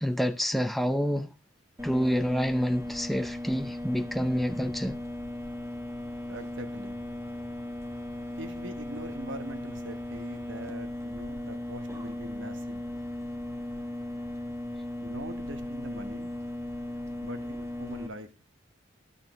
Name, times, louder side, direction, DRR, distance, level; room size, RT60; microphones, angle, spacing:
voice 1, 0.0-1.3 1.8-5.0, equal, ahead, 0.6 m, -28 dB
sound 1, 1.8-18.1, left 1 dB, 15° right, 1.4 m, -37 dB
voice 2, 6.3-7.0 8.4-12.9 15.0-16.3 17.2-18.3, right 1 dB, 70° right, 1.2 m, -42 dB
19.0 x 7.0 x 3.1 m
head